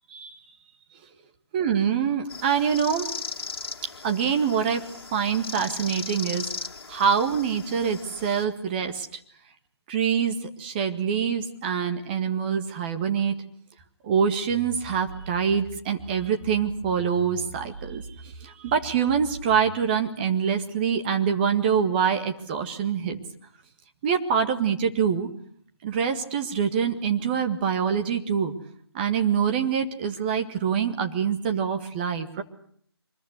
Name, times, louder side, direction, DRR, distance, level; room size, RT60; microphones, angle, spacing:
voice 1, 1.5-3.1 4.0-4.9 5.1-6.5 6.9-9.2 9.9-13.4 14.0-23.2 24.0-25.3 25.8-28.5 28.9-32.4, right 7 dB, 20° right, 6 dB, 1.8 m, -25 dB
sound of the cicada in nature, 2.3-8.4, left 4 dB, 55° left, 2.6 m, -37 dB
sound 1, 14.5-19.9, right 4 dB, 40° right, 4.7 m, -43 dB
24.5 x 21.5 x 8.1 m, 0.64 s
figure-of-eight pair, 155°, 14 cm